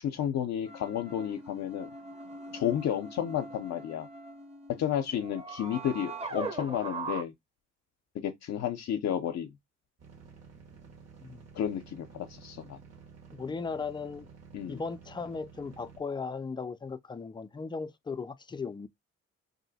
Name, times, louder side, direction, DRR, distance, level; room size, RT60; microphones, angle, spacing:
voice 1, 0.0-1.9 2.5-4.1 4.8-7.3 8.2-9.5 11.5-12.8 14.5-14.8, left 9 dB, 60° left, 0.6 m, -32 dB
sound 1, 0.7-7.2, right 3 dB, 20° right, 0.8 m, -41 dB
sound 2, 10.0-16.0, right 6 dB, 55° right, 1.3 m, -52 dB
voice 2, 13.3-14.3 14.7-18.9, left 4 dB, 15° left, 0.3 m, -37 dB
2.7 x 2.1 x 4.0 m
cardioid pair, 90°, 30 cm